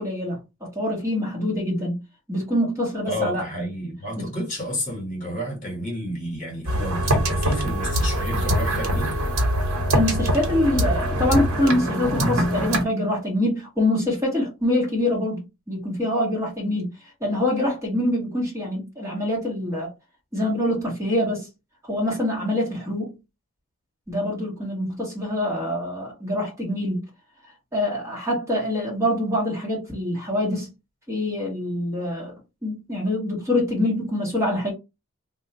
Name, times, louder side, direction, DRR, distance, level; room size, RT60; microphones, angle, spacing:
voice 1, 0.0-2.0 2.3-3.4 4.2-4.3 9.6-16.9 17.2-19.9 20.3-21.5 21.8-23.1 24.1-27.0 27.7-30.7 31.1-32.3 32.6-34.7, left 1 dB, 15° right, 1.3 m, -25 dB
voice 2, 3.1-9.1, equal, 35° left, 1.5 m, -30 dB
sound 1, 6.7-12.8, equal, 85° right, 1.1 m, -23 dB
2.7 x 2.3 x 4.1 m
head